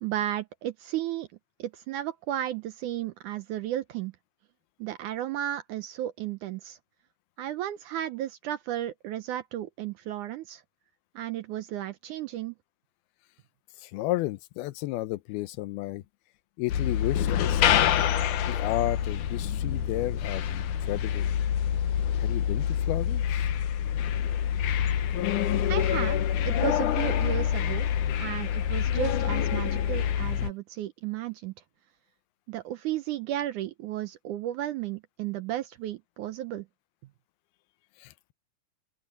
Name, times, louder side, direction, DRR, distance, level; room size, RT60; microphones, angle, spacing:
voice 1, 0.0-1.3 1.6-4.1 4.8-6.8 7.4-10.6 11.2-12.6 25.7-27.9 28.2-31.5 32.5-36.7, right 12 dB, 75° right, 1.8 m, -33 dB
voice 2, 13.8-16.0 16.6-17.6 18.5-21.3 22.2-23.5 38.0-38.3, left 17 dB, 85° left, 2.6 m, -33 dB
sound 1, 16.7-30.5, left 9 dB, 65° left, 2.2 m, -26 dB
open air
omnidirectional pair, 4.3 m